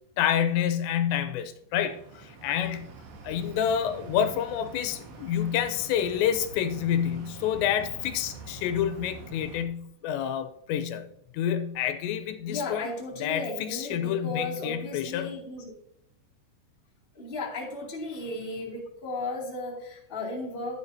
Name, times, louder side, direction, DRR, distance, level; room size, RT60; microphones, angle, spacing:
voice 1, 0.2-2.9 3.2-11.1 11.3-12.9 13.2-15.3, left 9 dB, 90° left, 3.0 m, -28 dB
sound 1, 1.9-9.6, right 4 dB, 85° right, 3.8 m, -45 dB
voice 2, 12.5-15.7 17.1-20.8, left 2 dB, 20° left, 1.6 m, -35 dB
11.5 x 10.5 x 2.7 m
omnidirectional pair, 5.0 m